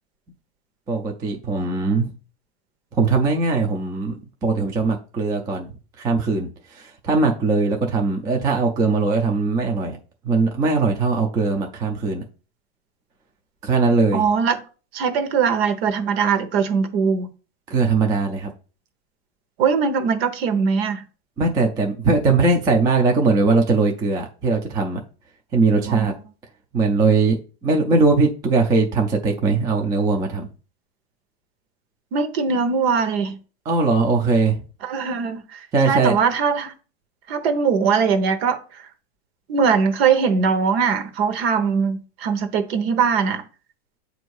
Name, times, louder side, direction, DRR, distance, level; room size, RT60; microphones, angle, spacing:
voice 1, 0.9-2.1 3.0-4.2 4.4-10.0 10.2-12.2 13.6-14.2 17.7-18.5 21.4-25.0 25.5-26.1 26.7-30.5 33.7-34.6 35.7-36.2, right 3 dB, 10° right, 0.4 m, -20 dB
voice 2, 14.1-14.6 14.9-17.3 19.6-21.0 25.9-26.0 32.1-33.4 34.8-36.7 37.3-38.8 39.5-43.4, right 6 dB, 65° right, 1.0 m, -21 dB
7.6 x 2.7 x 4.6 m
supercardioid pair, 155°, 34 cm